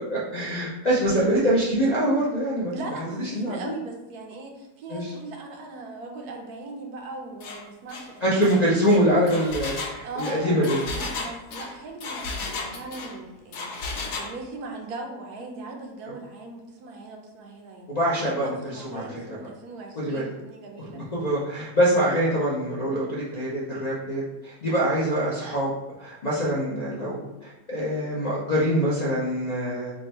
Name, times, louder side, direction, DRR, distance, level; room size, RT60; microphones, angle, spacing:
voice 1, 0.1-2.7 3.0-3.7 4.9-5.1 8.2-10.8 17.9-19.1 20.0-20.3 20.9-25.7 26.0-29.9, equal, 50° left, -8 dB, 0.4 m, -24 dB
voice 2, 2.7-9.1 10.0-17.9 18.3-21.0, right 3 dB, 75° right, 2 dB, 1.1 m, -39 dB
Engine, 7.4-7.6 7.9-8.1 8.4-13.1 13.5-14.3, left 3 dB, 70° left, 1.0 m, -34 dB
3.5 x 2.2 x 4.1 m, 0.94 s
omnidirectional pair, 1.7 m